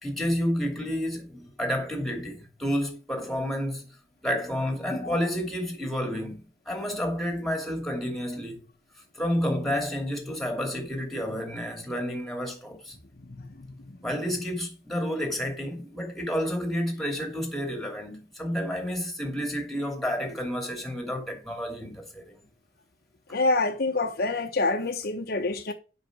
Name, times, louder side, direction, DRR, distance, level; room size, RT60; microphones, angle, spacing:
voice 1, 0.0-3.9 4.2-8.6 9.1-12.9 14.0-22.4, equal, ahead, 2.7 m, -30 dB
voice 2, 13.3-14.0 23.3-25.7, left 3 dB, 60° left, 1.0 m, -27 dB
7.9 x 5.9 x 6.0 m
head